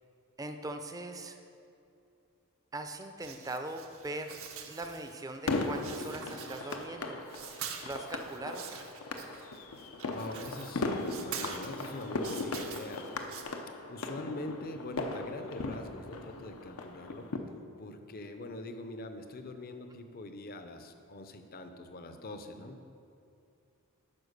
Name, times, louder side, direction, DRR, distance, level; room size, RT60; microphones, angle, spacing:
voice 1, 0.4-1.4 2.7-7.2 7.8-8.7, right 2 dB, 15° right, 6 dB, 0.5 m, -41 dB
sound 1, 3.2-5.4 5.6-7.0 7.3-13.4, right 7 dB, 70° right, 0.8 m, -45 dB
sound 2, 5.5-17.4, left 3 dB, 85° left, 0.7 m, -38 dB
voice 2, 10.1-10.9 11.1-13.1 13.9-17.3 17.8-22.8, left 2 dB, 45° left, 7 dB, 0.6 m, -43 dB
9.8 x 4.8 x 6.6 m, 2.6 s
head